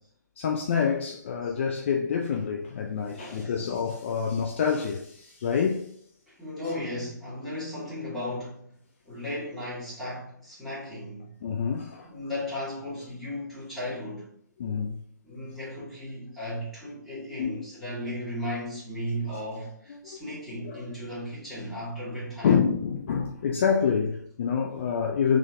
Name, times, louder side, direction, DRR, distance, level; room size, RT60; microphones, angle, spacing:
voice 1, 0.4-5.9 11.4-12.1 14.6-15.0 17.4-17.6 20.0-20.2 20.6-20.8 22.4-25.4, left 6 dB, 40° left, 0.4 m, -27 dB
voice 2, 3.1-3.6 6.3-8.7 9.1-11.3 12.0-14.3 15.2-22.5, left 1 dB, ahead, 1.7 m, -35 dB
3.8 x 3.2 x 3.7 m
figure-of-eight pair, 130°, 10 cm